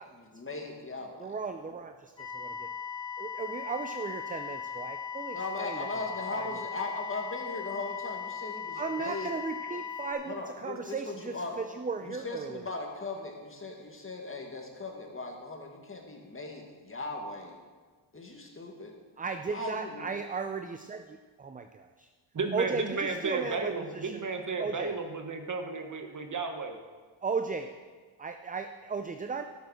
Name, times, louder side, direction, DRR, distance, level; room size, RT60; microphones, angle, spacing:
voice 1, 0.0-1.3 5.3-9.3 10.3-11.6 12.0-17.6 18.1-18.9 19.5-20.1, left 2 dB, 25° left, 1 dB, 2.0 m, -38 dB
voice 2, 1.2-2.7 3.2-6.6 8.7-12.7 19.2-22.1 22.5-24.3 24.6-25.0 27.2-27.7 28.2-29.4, right 5 dB, 20° right, 7 dB, 0.4 m, -36 dB
sound 1, 2.2-10.1, left 7 dB, 60° left, 3.7 m, -38 dB
voice 3, 22.3-26.8, right 4 dB, 35° right, 5 dB, 1.3 m, -33 dB
12.0 x 6.8 x 6.4 m, 1.5 s
cardioid pair, 95°, 50 cm